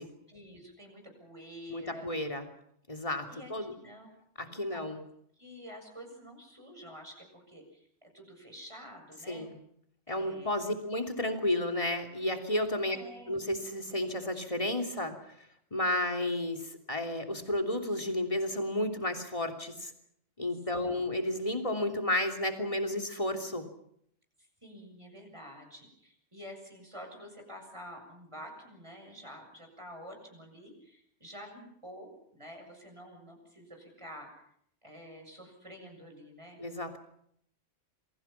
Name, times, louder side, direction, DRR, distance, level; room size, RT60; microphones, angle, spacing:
voice 1, 0.0-2.2 3.3-4.1 4.5-4.8 5.4-7.9 8.1-9.5 10.1-10.6 12.9-13.4 20.5-21.1 24.6-34.3 34.8-36.6, equal, 25° right, 3 dB, 7.1 m, -49 dB
voice 2, 1.7-2.4 2.9-3.7 4.4-5.0 9.3-9.6 10.1-13.0 13.3-15.1 15.7-19.9 20.4-23.6 36.6-37.0, left 1 dB, 25° left, 5 dB, 3.2 m, -32 dB
28.0 x 23.5 x 5.9 m, 0.69 s
omnidirectional pair, 1.2 m